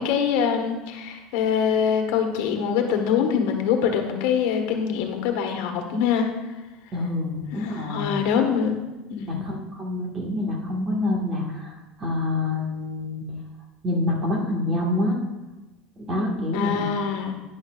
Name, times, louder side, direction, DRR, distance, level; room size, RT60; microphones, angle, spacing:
voice 1, 0.0-6.3 7.5-8.8 9.1-9.5 16.5-17.3, left 7 dB, 70° left, 4 dB, 1.4 m, -24 dB
voice 2, 6.9-8.2 9.3-13.2 13.8-15.2 16.0-16.9, left 2 dB, 25° right, -1 dB, 1.6 m, -27 dB
11.0 x 10.0 x 2.4 m, 1.1 s
supercardioid pair, 145°, 0 cm